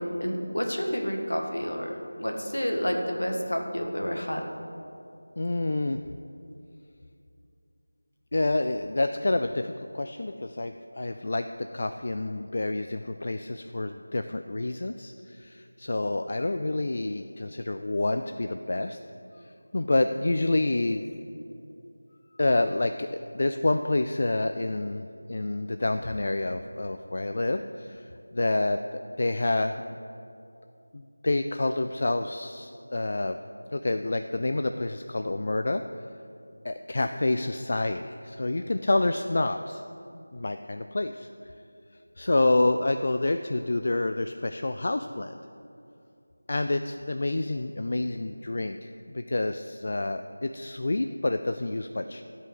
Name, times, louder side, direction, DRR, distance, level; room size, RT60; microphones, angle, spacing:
voice 1, 0.0-1.9 2.2-4.4, equal, 70° left, 2 dB, 1.7 m, -29 dB
voice 2, 5.4-6.0 8.3-19.0 19.4-21.0 22.4-23.1 23.3-29.8 30.9-33.4 33.7-35.8 36.6-39.8 40.3-41.3 42.2-45.4 46.5-52.2, left 2 dB, 40° left, 7 dB, 0.3 m, -28 dB
12.5 x 5.5 x 8.0 m, 2.6 s
figure-of-eight pair, 170°, 0 cm